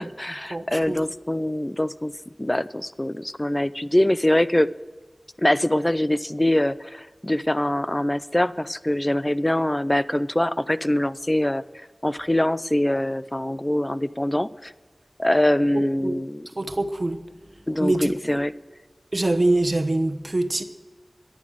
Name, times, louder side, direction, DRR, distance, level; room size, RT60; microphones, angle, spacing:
voice 1, 0.0-2.1 2.4-4.7 5.4-11.6 12.0-14.7 15.2-16.4 17.7-18.5, left 1 dB, 25° left, 16 dB, 0.5 m, -23 dB
voice 2, 0.5-1.0 15.7-16.2 16.6-17.2 17.8-18.4 19.1-20.6, right 2 dB, 50° right, 9 dB, 1.1 m, -24 dB
11.0 x 10.5 x 6.4 m, 1.3 s
wide cardioid pair, 45°, 0 cm